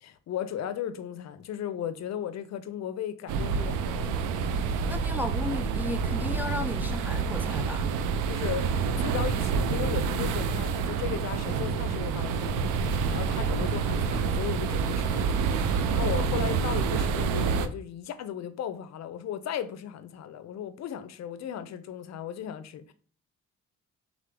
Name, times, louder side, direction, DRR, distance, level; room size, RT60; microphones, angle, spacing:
voice 1, 0.0-4.1 8.3-22.9, left 9 dB, 60° left, 0.5 m, -36 dB
sound 1, 3.3-17.7, right 5 dB, 90° right, 0.5 m, -28 dB
voice 2, 4.9-8.0, left 1 dB, 5° right, 0.4 m, -34 dB
3.7 x 3.6 x 3.3 m
cardioid pair, 90°, 30 cm